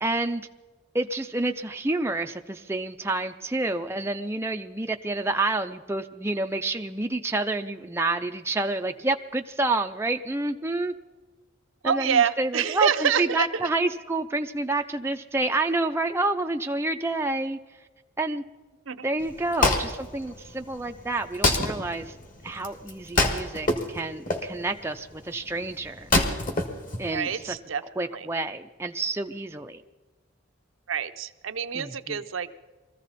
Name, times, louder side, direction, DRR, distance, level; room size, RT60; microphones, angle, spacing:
voice 1, 0.0-0.5 0.9-10.9 11.8-17.6 18.2-18.4 19.0-22.1 22.4-26.1 27.0-27.6 28.0-29.8 31.7-32.2, right 2 dB, 10° right, 5 dB, 0.4 m, -28 dB
voice 2, 11.8-13.6 18.9-19.1 27.1-28.3 30.9-32.5, right 7 dB, 80° right, 11 dB, 0.7 m, -27 dB
Wood, 19.2-27.5, left 2 dB, 40° left, 1.7 m, -27 dB
22.0 x 14.5 x 4.1 m, 1.2 s
head